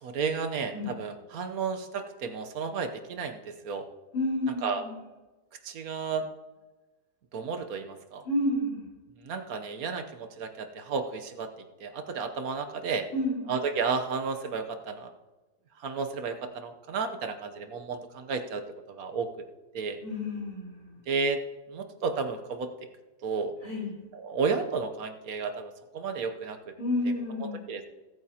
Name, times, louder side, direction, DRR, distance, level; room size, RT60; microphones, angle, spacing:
voice 1, 0.0-3.9 4.6-4.8 5.6-6.3 7.3-8.3 9.2-11.5 11.8-13.0 13.5-15.1 15.8-19.5 19.7-20.0 21.1-21.4 21.7-22.7 23.2-23.5 24.1-26.7 27.4-27.9, right 5 dB, 65° right, 7 dB, 1.2 m, -32 dB
voice 2, 4.1-5.0 8.2-8.9 13.1-13.4 20.0-21.0 23.6-23.9 26.8-27.6, left 1 dB, 70° left, -4 dB, 4.6 m, -30 dB
22.0 x 8.8 x 2.8 m, 1.2 s
omnidirectional pair, 1.7 m